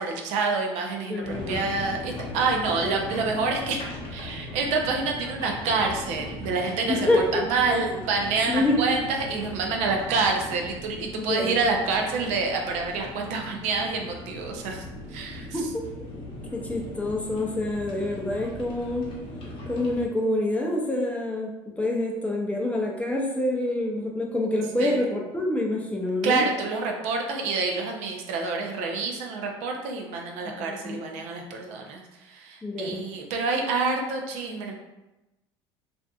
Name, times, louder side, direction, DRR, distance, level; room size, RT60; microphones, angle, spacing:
voice 1, 0.0-15.5 24.8-25.0 26.2-34.7, right 4 dB, 65° right, 2 dB, 0.5 m, -27 dB
voice 2, 1.1-1.6 2.8-3.2 6.9-8.0 8.5-9.0 11.1-11.6 15.5-15.8 16.2-16.3 16.5-19.1 19.7-26.5 30.6-31.0 32.6-33.0, left 1 dB, 10° left, -1 dB, 0.5 m, -27 dB
sound 1, 1.2-20.1, left 1 dB, 45° left, 0.8 m, -39 dB
2.5 x 2.4 x 2.3 m, 1.0 s
hypercardioid pair, 80°, 13 cm